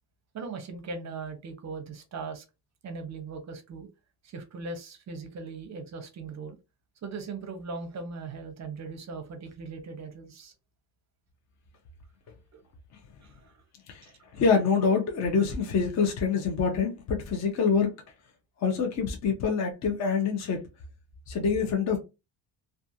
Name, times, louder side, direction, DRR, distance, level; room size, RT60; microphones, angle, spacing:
voice 1, 0.3-2.4 2.8-3.9 4.2-6.6 7.0-10.5 12.5-12.6 13.2-13.6 14.0-14.1, right 4 dB, 35° right, 0.6 m, -39 dB
voice 2, 14.3-17.9 18.6-20.6 21.3-22.0, left 5 dB, 35° left, 0.5 m, -25 dB
2.3 x 2.3 x 2.6 m
cardioid pair, 160°, 47 cm